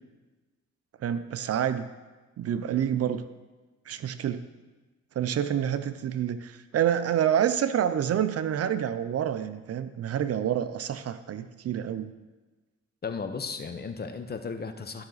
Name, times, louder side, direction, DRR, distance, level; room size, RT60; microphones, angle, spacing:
voice 1, 1.0-1.9 2.4-3.2 3.9-4.4 5.2-12.1, right 9 dB, 55° right, 12 dB, 0.6 m, -28 dB
voice 2, 13.0-15.0, left 5 dB, 30° left, 8 dB, 0.8 m, -35 dB
13.0 x 6.0 x 4.0 m, 1.2 s
cardioid pair, 90°, 30 cm